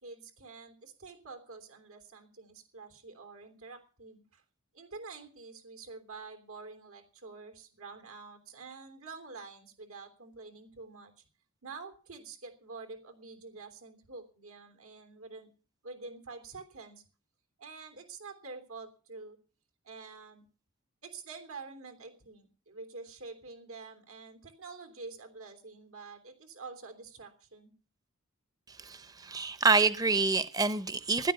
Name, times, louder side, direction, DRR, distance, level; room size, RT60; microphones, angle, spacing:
voice 1, 0.0-4.4 4.7-11.2 11.6-15.5 15.8-17.0 17.6-19.4 19.8-20.4 21.0-27.7, right 4 dB, 85° right, 3.1 m, -47 dB
voice 2, 28.8-31.3, right 4 dB, 15° right, 0.7 m, -27 dB
16.0 x 10.5 x 6.9 m
head